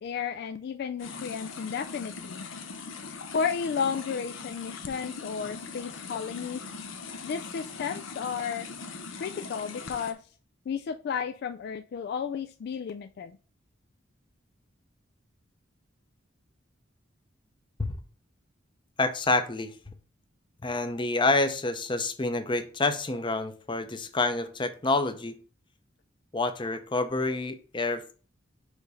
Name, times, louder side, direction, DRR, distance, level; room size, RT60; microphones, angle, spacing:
voice 1, 0.0-2.5 3.3-6.6 7.2-8.7 9.2-10.2 10.7-13.4, left 6 dB, 55° left, 9 dB, 0.3 m, -33 dB
sound 1, 1.0-10.1, left 4 dB, 90° left, 0.9 m, -41 dB
voice 2, 19.0-19.9 20.6-25.4 26.3-28.1, left 2 dB, 25° left, 9 dB, 0.7 m, -28 dB
5.1 x 4.0 x 4.9 m, 0.38 s
head